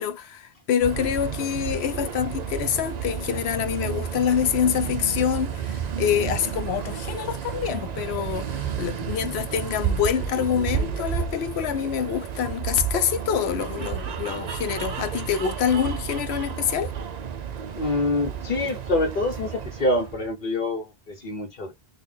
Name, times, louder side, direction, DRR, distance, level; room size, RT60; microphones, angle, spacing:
voice 1, 0.0-16.9, left 8 dB, 85° left, 0.9 m, -26 dB
sound 1, 0.8-20.3, right 7 dB, 50° right, 0.5 m, -31 dB
voice 2, 17.8-21.7, left 2 dB, 55° left, 1.0 m, -26 dB
3.8 x 2.4 x 3.2 m
omnidirectional pair, 1.1 m